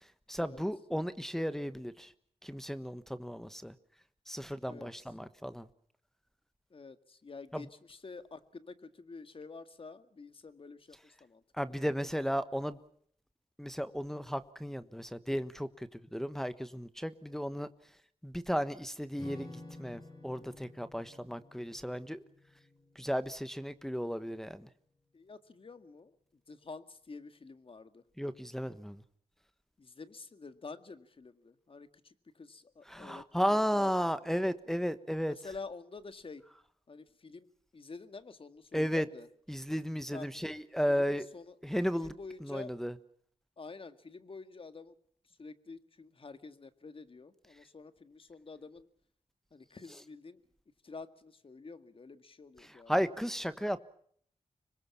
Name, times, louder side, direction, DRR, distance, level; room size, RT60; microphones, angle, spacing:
voice 1, 0.3-2.1 2.4-3.7 4.3-5.7 7.5-7.6 11.6-12.8 13.6-17.7 18.2-22.2 22.9-24.7 28.2-29.0 32.9-35.3 38.7-39.0 39.5-41.3 41.6-42.1 42.4-42.9 52.9-53.8, equal, 5° left, 11 dB, 1.3 m, -34 dB
voice 2, 4.7-5.1 6.7-12.3 17.3-17.4 25.1-26.2 26.5-28.0 29.8-34.1 35.3-36.4 36.9-37.5 37.7-39.3 40.1-40.3 40.9-41.6 41.9-42.7 43.6-44.9 45.3-48.9 49.5-50.4 50.8-52.9, left 4 dB, 45° left, 11 dB, 2.0 m, -49 dB
Acoustic guitar / Strum, 19.2-24.0, left 2 dB, 30° left, 6.2 m, -52 dB
26.0 x 21.5 x 7.2 m, 0.63 s
cardioid pair, 65°, 12 cm